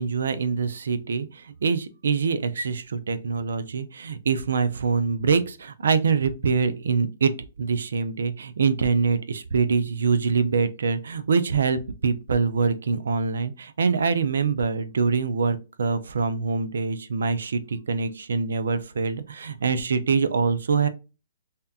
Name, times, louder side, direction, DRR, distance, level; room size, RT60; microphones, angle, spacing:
voice 1, 0.0-7.3 7.6-20.9, right 5 dB, 85° right, 0.5 m, -24 dB
3.4 x 2.8 x 2.4 m
hypercardioid pair, 150°, 0 cm